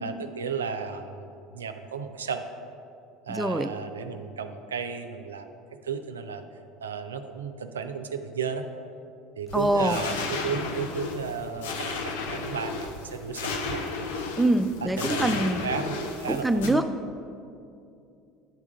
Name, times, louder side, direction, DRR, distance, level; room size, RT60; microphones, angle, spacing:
voice 1, 0.0-2.4 3.2-5.5 5.8-6.4 6.8-8.7 9.4-13.8 14.8-16.8, right 6 dB, 75° right, 7 dB, 0.4 m, -34 dB
voice 2, 3.3-3.7 9.5-10.0 14.4-15.6 16.3-16.9, right 1 dB, 5° right, 9 dB, 0.4 m, -24 dB
sound 1, 9.5-16.7, left 3 dB, 65° left, 0.6 m, -33 dB
9.2 x 3.6 x 6.4 m, 2.5 s
figure-of-eight pair, 65°, 0 cm